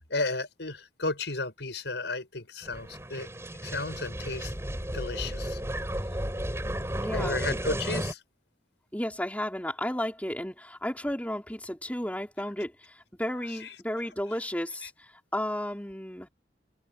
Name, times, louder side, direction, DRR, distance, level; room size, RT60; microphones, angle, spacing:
voice 1, 0.1-3.3 3.6-4.5 4.9-5.6 7.1-8.2 13.5-13.8, left 3 dB, 90° left, 6.1 m, -33 dB
sound 1, 2.6-8.1, right 1 dB, 15° right, 4.3 m, -33 dB
voice 2, 7.0-7.4 8.9-12.7 13.2-14.9 15.3-16.3, left 1 dB, 10° left, 3.9 m, -33 dB
head